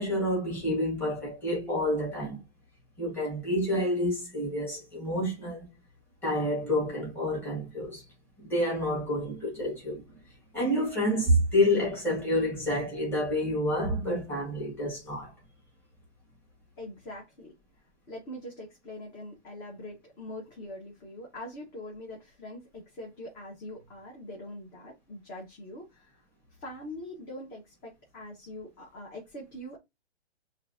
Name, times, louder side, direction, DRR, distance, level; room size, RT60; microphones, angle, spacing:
voice 1, 0.0-2.4 3.0-5.7 6.2-8.0 8.4-10.0 10.5-15.3, left 1 dB, 5° left, 2.0 m, -28 dB
voice 2, 16.8-17.5 18.1-26.2 26.6-29.8, left 1 dB, 25° left, 1.4 m, -43 dB
5.8 x 2.8 x 2.8 m
hypercardioid pair, 150°, 34 cm